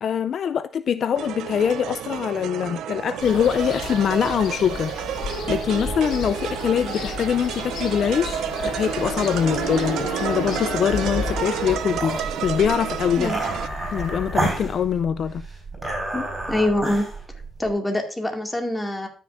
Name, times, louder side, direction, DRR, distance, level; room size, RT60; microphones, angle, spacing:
voice 1, 0.0-13.4 13.9-15.4, left 8 dB, 60° left, 0.3 m, -23 dB
sound 1, 1.1-13.7, right 10 dB, 80° right, 0.5 m, -30 dB
sound 2, 3.2-14.7, left 6 dB, 75° left, 0.9 m, -34 dB
sound 3, 12.0-17.7, right 2 dB, 20° right, 4.7 m, -30 dB
voice 2, 16.1-17.1 17.6-19.1, left 1 dB, 10° left, 2.1 m, -25 dB
13.5 x 6.5 x 2.5 m
cardioid pair, 90°, 0 cm